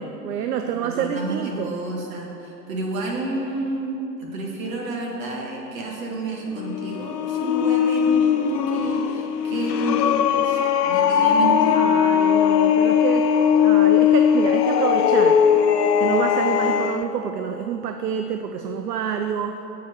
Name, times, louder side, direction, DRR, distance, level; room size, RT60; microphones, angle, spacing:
voice 1, 0.0-1.7 11.7-15.4 16.0-19.6, right 7 dB, 70° right, 6 dB, 0.6 m, -28 dB
voice 2, 0.8-11.7, right 2 dB, 55° right, -2 dB, 2.0 m, -30 dB
sound 1, 6.5-17.0, left 8 dB, 70° left, 0.6 m, -19 dB
7.5 x 4.8 x 7.0 m, 3.0 s
figure-of-eight pair, 105°, 50 cm